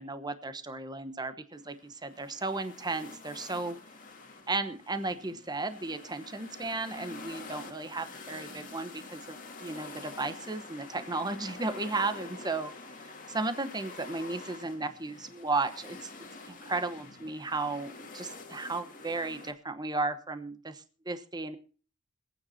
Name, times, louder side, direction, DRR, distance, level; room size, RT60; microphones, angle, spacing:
voice 1, 0.0-3.8 4.5-12.7 13.3-16.1 16.5-21.6, right 3 dB, 20° right, 10 dB, 1.0 m, -34 dB
sound 1, 1.5-19.5, left 3 dB, 40° left, 2.1 m, -47 dB
26.5 x 9.1 x 2.8 m, 0.39 s
head